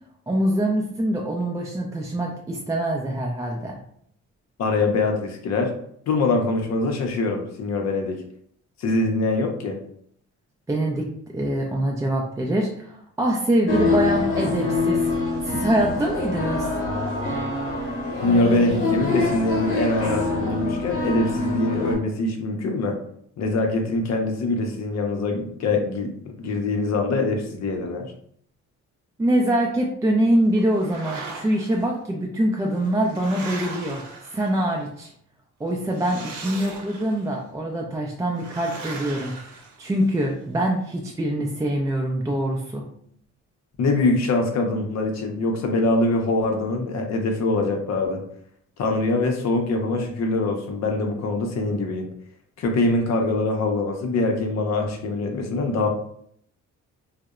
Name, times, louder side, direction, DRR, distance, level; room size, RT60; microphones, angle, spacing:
voice 1, 0.3-3.8 10.7-11.1 11.3-15.0 15.4-16.7 29.2-34.0 34.3-35.1 35.6-39.3 39.8-42.8, right 1 dB, 10° right, -1 dB, 0.3 m, -24 dB
voice 2, 4.6-5.7 6.1-8.2 8.8-9.8 18.2-23.0 23.4-26.1 26.4-28.1 43.8-48.2 48.8-52.1 52.6-55.9, left 2 dB, 60° left, 3 dB, 0.6 m, -23 dB
sound 1, 13.7-21.9, left 3 dB, 45° left, 0.9 m, -25 dB
sound 2, 30.6-31.8 32.6-34.8 35.9-37.3 38.4-40.3, right 3 dB, 75° right, 0.7 m, -39 dB
2.7 x 2.0 x 2.3 m, 0.66 s
cardioid pair, 90°, 30 cm